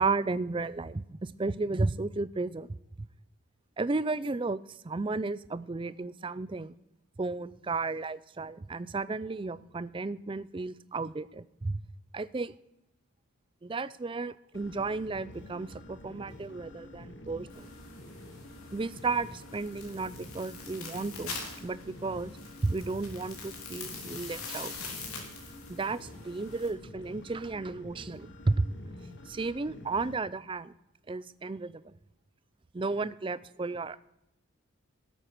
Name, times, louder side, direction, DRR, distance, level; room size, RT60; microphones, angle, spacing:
voice 1, 0.0-2.7 3.8-6.7 7.2-11.8 12.1-12.5 13.6-17.7 18.7-22.3 22.6-24.7 25.7-28.7 29.3-30.7 31.1-32.0 32.7-34.0, right 3 dB, 25° right, 18 dB, 0.4 m, -33 dB
sound 1, 14.5-30.1, left 1 dB, 55° left, 1.5 m, -48 dB
sound 2, 17.5-26.7, left 4 dB, 80° left, 3.5 m, -44 dB
17.0 x 8.2 x 6.0 m, 0.85 s
head